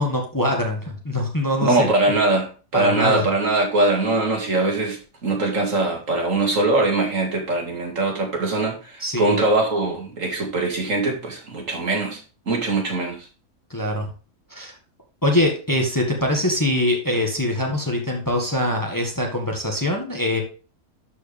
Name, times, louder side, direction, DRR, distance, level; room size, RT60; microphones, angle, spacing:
voice 1, 0.0-1.9 2.7-3.3 9.0-9.4 13.7-14.1 14.5-14.8 15.2-20.4, left 1 dB, 15° left, 1 dB, 1.6 m, -23 dB
voice 2, 1.6-2.5 2.7-12.2 12.5-13.2, right 2 dB, 60° right, 0 dB, 2.6 m, -22 dB
12.5 x 4.9 x 3.4 m, 0.35 s
omnidirectional pair, 1.5 m